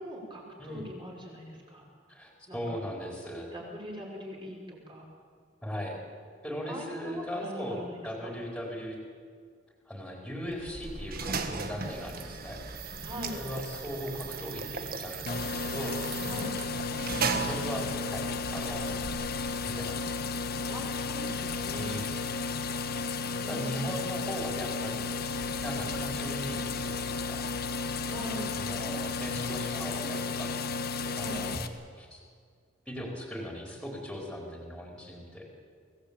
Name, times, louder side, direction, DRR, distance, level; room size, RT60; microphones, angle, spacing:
voice 1, 0.0-1.8 2.5-2.8 3.5-5.0 6.6-8.3 13.0-13.4 16.2-16.5 20.7-22.0 23.1-23.9 28.0-28.5 31.2-31.4, equal, 25° right, -2 dB, 5.6 m, -42 dB
voice 2, 2.1-3.5 5.6-6.0 6.4-9.0 9.9-12.6 13.3-16.0 17.4-18.3 18.5-18.9 19.6-20.1 21.7-22.1 23.5-25.1 25.6-27.4 28.5-30.5 31.1-31.7 32.0-32.2 32.9-35.5, equal, 5° left, -1 dB, 4.4 m, -38 dB
sound 1, 10.5-19.8, right 4 dB, 45° right, 1.6 m, -37 dB
sound 2, 15.3-31.7, left 4 dB, 50° left, 1.3 m, -33 dB
24.0 x 17.0 x 8.8 m, 2.1 s
head